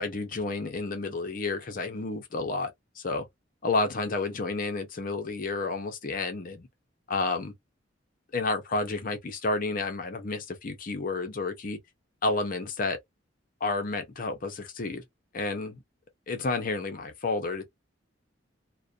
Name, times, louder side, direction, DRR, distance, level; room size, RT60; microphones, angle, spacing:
voice 1, 0.0-3.3 3.6-6.7 7.1-7.5 8.3-11.8 12.2-13.0 13.6-15.0 15.3-15.8 16.3-17.7, left 3 dB, 45° left, 0.6 m, -30 dB
2.4 x 2.1 x 2.4 m
head